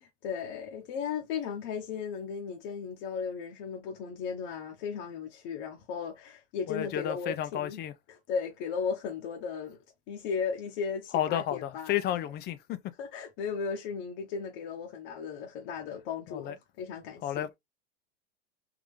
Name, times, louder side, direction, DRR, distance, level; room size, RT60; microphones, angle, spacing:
voice 1, 0.0-7.8 8.1-9.8 10.1-11.9 13.0-17.5, left 6 dB, 50° left, 1.1 m, -36 dB
voice 2, 6.7-7.9 11.1-12.8 16.3-16.6 17.2-17.5, left 11 dB, 30° left, 0.5 m, -32 dB
3.8 x 2.9 x 3.2 m
hypercardioid pair, 120°, 34 cm